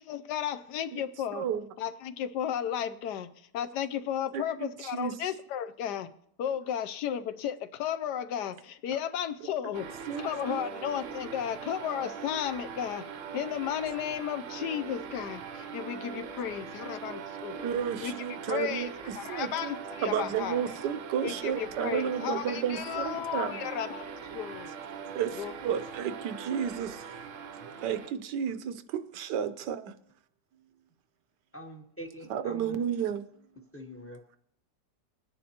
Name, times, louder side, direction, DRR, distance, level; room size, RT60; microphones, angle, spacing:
voice 1, 0.0-1.5 1.8-6.1 6.4-13.0 13.3-17.7 18.0-18.1 18.5-20.7 21.2-24.7 25.3-25.5, left 9 dB, 75° left, 1.2 m, -34 dB
voice 2, 1.3-1.7 4.3-5.1 9.4-9.5 10.1-10.6 17.6-19.7 20.0-23.6 25.1-27.2 27.5-29.9 32.3-33.3, right 8 dB, 80° right, 1.3 m, -32 dB
sound 1, 9.7-28.1, right 6 dB, 60° right, 0.9 m, -41 dB
voice 3, 31.5-32.8 33.7-34.4, equal, 10° left, 0.7 m, -45 dB
21.5 x 9.7 x 2.8 m
omnidirectional pair, 1.8 m